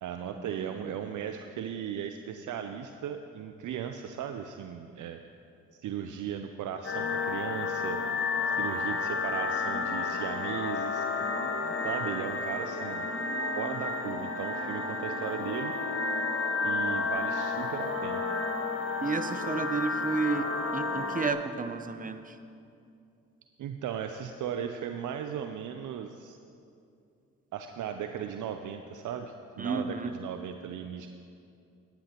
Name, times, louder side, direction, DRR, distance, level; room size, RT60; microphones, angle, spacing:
voice 1, 0.0-5.2 5.7-8.0 8.6-11.1 11.8-13.1 13.6-15.7 16.6-18.2 23.6-26.4 27.5-31.1, right 8 dB, 65° right, 7 dB, 0.6 m, -37 dB
voice 2, 0.6-1.1 11.2-11.7 19.0-22.4 29.6-30.1, right 4 dB, 25° right, 9 dB, 0.8 m, -32 dB
sound 1, 6.8-21.3, left 3 dB, 40° left, 1.8 m, -31 dB
17.0 x 10.0 x 3.0 m, 2.5 s
hypercardioid pair, 45°, 34 cm